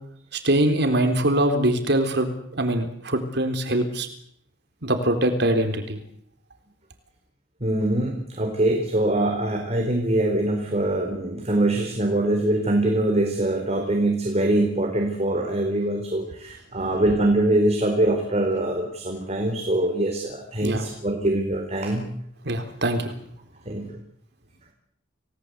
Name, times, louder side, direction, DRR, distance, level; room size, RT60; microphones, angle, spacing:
voice 1, 0.3-2.3 2.5-4.1 4.8-6.0 20.6-20.8 22.4-23.1, right 1 dB, 65° right, 7 dB, 3.8 m, -23 dB
voice 2, 7.6-22.1 23.7-23.9, right 1 dB, 35° right, 3 dB, 4.4 m, -23 dB
29.5 x 19.0 x 8.2 m, 0.69 s
head